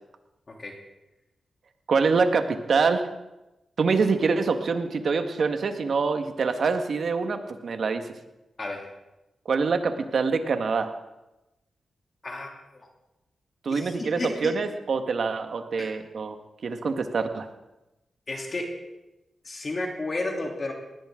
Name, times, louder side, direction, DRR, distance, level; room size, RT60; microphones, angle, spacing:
voice 1, 1.9-3.1 3.8-8.1 9.4-10.9 13.6-16.4 16.6-17.5, right 4 dB, 65° right, 7 dB, 1.6 m, -25 dB
voice 2, 13.7-14.5 15.8-15.9 18.3-18.6 19.4-20.7, left 2 dB, 45° left, 0 dB, 3.2 m, -32 dB
20.0 x 17.0 x 3.8 m, 0.98 s
cardioid pair, 65°, 0 cm